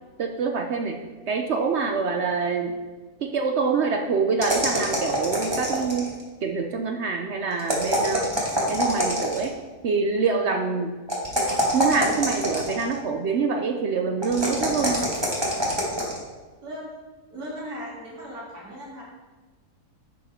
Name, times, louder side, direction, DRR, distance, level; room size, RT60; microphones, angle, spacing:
voice 1, 0.2-1.0 1.3-2.8 3.2-6.1 6.4-8.3 8.7-9.5 9.8-11.0 11.7-15.1, right 5 dB, 60° right, 4 dB, 0.8 m, -25 dB
sound 1, 4.4-6.2 7.6-9.5 11.1-12.9 14.2-16.2, equal, 15° right, 1.6 m, -25 dB
voice 2, 17.3-19.0, equal, 85° right, -6 dB, 3.2 m, -37 dB
10.0 x 5.1 x 4.3 m, 1.3 s
omnidirectional pair, 1.6 m